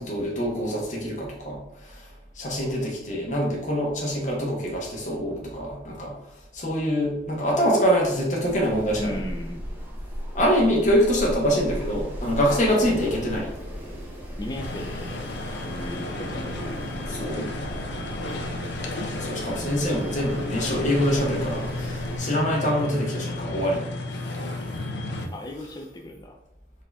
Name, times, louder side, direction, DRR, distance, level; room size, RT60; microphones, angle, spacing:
voice 1, 0.0-2.1 2.3-6.1 6.5-9.2 10.3-13.5 17.1-17.5 19.0-23.8, equal, 40° left, -3 dB, 1.0 m, -25 dB
Wind, 8.5-22.2, equal, 10° right, 0.7 m, -36 dB
voice 2, 9.0-9.6 12.5-13.0 14.4-16.8 19.5-19.8 25.3-26.4, left 1 dB, 20° left, 2 dB, 0.4 m, -37 dB
sound 1, 14.6-25.3, left 2 dB, 70° left, 0.5 m, -33 dB
4.2 x 2.7 x 3.4 m, 0.81 s
head